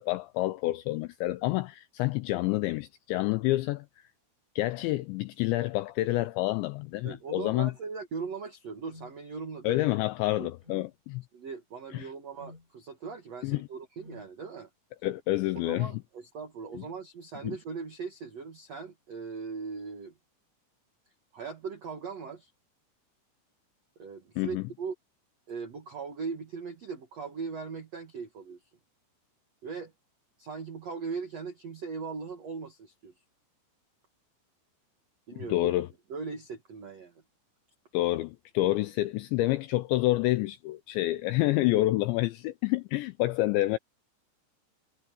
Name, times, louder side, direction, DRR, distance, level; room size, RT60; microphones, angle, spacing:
voice 1, 0.0-3.9 4.6-7.7 9.6-11.2 11.9-12.1 13.4-13.7 15.0-15.9 16.8-16.9 17.4-17.6 24.4-24.6 35.4-35.9 37.9-43.8, left 17 dB, 85° left, 2.6 m, -28 dB
voice 2, 7.0-9.8 10.4-10.5 11.3-14.7 15.5-20.1 21.3-22.5 24.0-24.9 25.5-28.6 29.6-29.9 30.4-33.1 35.3-35.7 36.1-37.1, right 5 dB, 75° right, 1.5 m, -39 dB
sound 1, 8.9-9.2 10.6-10.9 12.4-12.7 14.0-14.3, left 2 dB, 10° right, 4.5 m, -50 dB
omnidirectional pair, 5.8 m